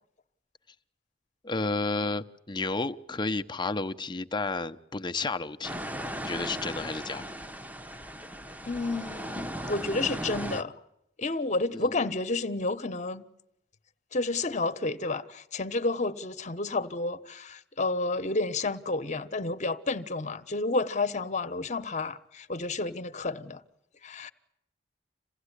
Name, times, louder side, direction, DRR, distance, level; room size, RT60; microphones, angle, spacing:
voice 1, 1.4-5.8 6.2-7.2 11.7-12.1, left 3 dB, 25° left, 0.9 m, -32 dB
sound 1, 5.6-10.6, equal, 10° right, 1.0 m, -37 dB
voice 2, 8.6-10.7 11.2-13.3 14.1-23.6 24.0-24.3, left 3 dB, 40° left, 1.3 m, -30 dB
27.5 x 17.0 x 10.0 m
head